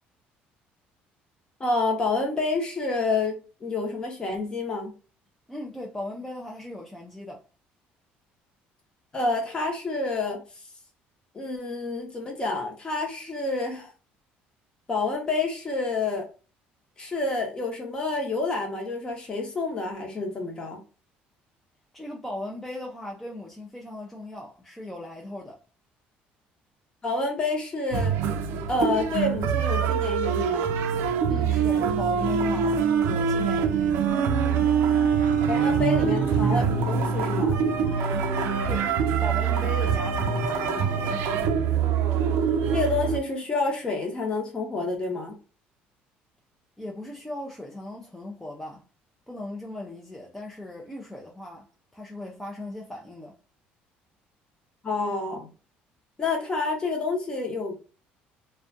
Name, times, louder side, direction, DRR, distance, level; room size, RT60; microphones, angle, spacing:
voice 1, 1.6-4.9 9.1-10.4 11.3-13.9 14.9-16.3 17.0-20.8 27.0-28.2 28.7-30.7 35.5-37.6 42.7-45.3 54.8-55.5 56.2-57.8, left 3 dB, 25° left, 0.8 m, -28 dB
voice 2, 5.5-7.4 21.9-25.6 31.3-33.9 38.7-38.9 39.2-41.4 46.8-48.8 49.3-51.7 51.9-53.4, left 1 dB, 5° left, 0.4 m, -38 dB
sound 1, 27.9-43.2, right 7 dB, 75° right, 0.4 m, -24 dB
sound 2, 34.1-41.1, left 4 dB, 75° left, 0.7 m, -38 dB
2.4 x 2.2 x 2.5 m
cardioid pair, 135°, 4 cm